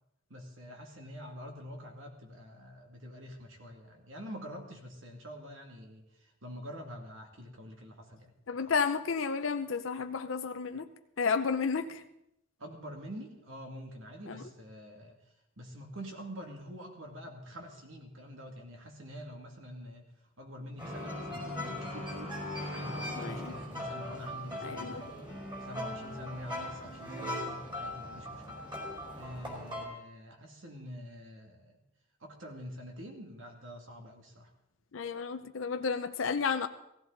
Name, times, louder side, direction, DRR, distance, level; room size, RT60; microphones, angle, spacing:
voice 1, 0.3-8.3 12.6-15.2 15.6-20.1 20.4-22.4 22.7-25.1 25.6-28.6 29.2-31.8 32.2-34.5, equal, 80° right, 2 dB, 2.4 m, -46 dB
voice 2, 8.5-10.9 11.2-12.0 14.3-14.4 23.2-23.4 24.6-25.0 34.9-36.7, left 5 dB, 75° left, 8 dB, 0.6 m, -32 dB
sound 1, 20.8-29.8, left 1 dB, 25° right, 4.5 m, -39 dB
17.0 x 15.5 x 4.0 m, 0.82 s
head